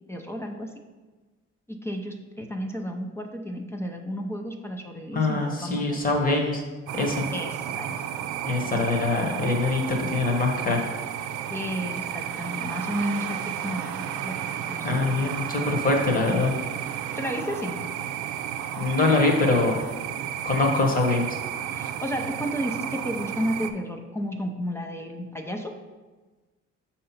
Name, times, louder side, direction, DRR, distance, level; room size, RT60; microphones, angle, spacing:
voice 1, 0.1-0.7 1.7-6.0 7.3-8.0 11.5-15.1 17.1-17.8 21.7-25.8, equal, 10° left, 2 dB, 0.5 m, -32 dB
voice 2, 5.1-6.6 6.9-7.3 8.4-10.9 14.8-16.5 18.8-19.8 20.4-21.3, left 3 dB, 30° left, 2 dB, 1.2 m, -23 dB
sound 1, 6.9-23.7, right 10 dB, 85° right, 0.5 m, -33 dB
6.5 x 2.9 x 5.6 m, 1.3 s
cardioid pair, 120°, 29 cm